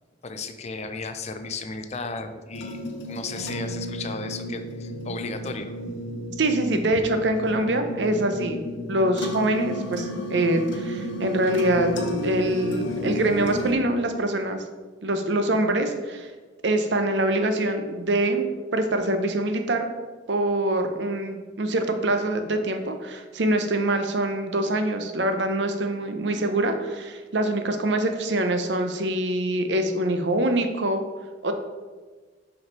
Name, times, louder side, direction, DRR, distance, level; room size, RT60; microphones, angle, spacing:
voice 1, 0.2-5.7, left 4 dB, 35° left, 9 dB, 0.5 m, -35 dB
sound 1, 2.5-13.7, equal, 85° left, 0.9 m, -32 dB
voice 2, 6.4-8.6 8.9-14.6 15.0-16.3 16.6-18.5 18.7-19.9 20.3-31.0 31.4-31.5, right 1 dB, 65° right, 7 dB, 0.7 m, -24 dB
5.4 x 5.3 x 4.5 m, 1.4 s
head